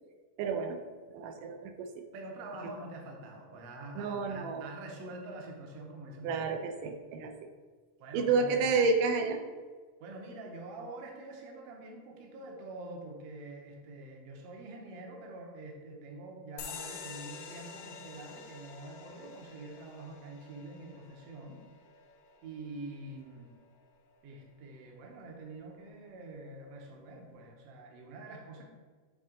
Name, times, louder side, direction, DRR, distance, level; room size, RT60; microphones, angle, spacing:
voice 1, 0.4-0.8 1.1-1.9 4.0-4.7 6.2-7.3 8.1-9.4, right 4 dB, 85° right, 6 dB, 2.2 m, -30 dB
voice 2, 2.1-6.5 8.0-8.7 10.0-21.6 22.4-23.5 24.2-28.6, right 2 dB, 65° right, 0 dB, 1.6 m, -46 dB
sound 1, 16.6-23.6, left 5 dB, 75° left, 1.7 m, -48 dB
7.6 x 3.7 x 3.8 m, 1.5 s
omnidirectional pair, 3.8 m